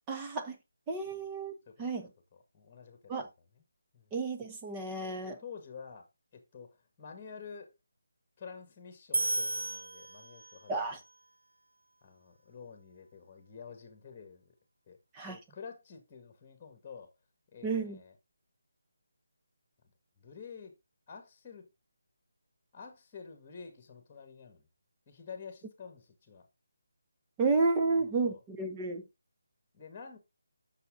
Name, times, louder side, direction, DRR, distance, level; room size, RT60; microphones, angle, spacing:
voice 1, 0.1-0.6 0.9-1.5 1.8-2.1 3.1-3.3 4.1-5.4 10.7-11.0 15.1-15.4 17.6-18.0 27.4-29.0, right 3 dB, 15° right, 1.1 m, -31 dB
voice 2, 2.3-3.6 3.9-4.1 5.0-6.1 6.3-7.7 8.4-11.0 12.0-14.5 14.9-15.0 15.2-17.1 17.5-18.2 20.2-20.8 21.1-21.7 22.7-24.7 25.1-26.5 27.9-28.4 29.7-30.2, left 6 dB, 15° left, 2.0 m, -49 dB
sound 1, 9.1-10.8, right 2 dB, 85° right, 1.5 m, -33 dB
9.7 x 6.5 x 3.8 m
figure-of-eight pair, 170°, 0 cm